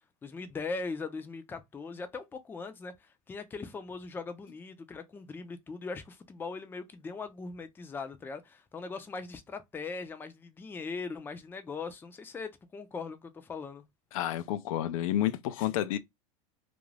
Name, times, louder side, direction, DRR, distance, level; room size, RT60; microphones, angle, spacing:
voice 1, 0.2-13.8, left 4 dB, 10° left, 0.4 m, -40 dB
voice 2, 14.1-16.0, left 12 dB, 80° left, 0.5 m, -30 dB
2.5 x 2.2 x 3.2 m
supercardioid pair, 130°, 17 cm